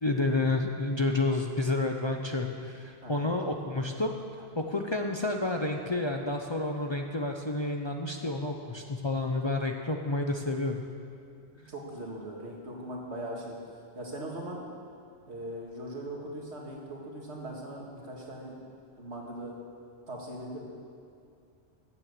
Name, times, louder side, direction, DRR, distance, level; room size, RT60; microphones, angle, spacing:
voice 1, 0.0-4.1 4.4-10.7, left 2 dB, 30° left, 2 dB, 0.6 m, -30 dB
voice 2, 3.0-3.4 11.7-13.6 14.0-14.7 15.3-18.6 19.0-19.6 20.1-20.7, right 1 dB, 75° right, -2 dB, 2.3 m, -40 dB
15.0 x 7.7 x 6.7 m, 2.4 s
omnidirectional pair, 1.1 m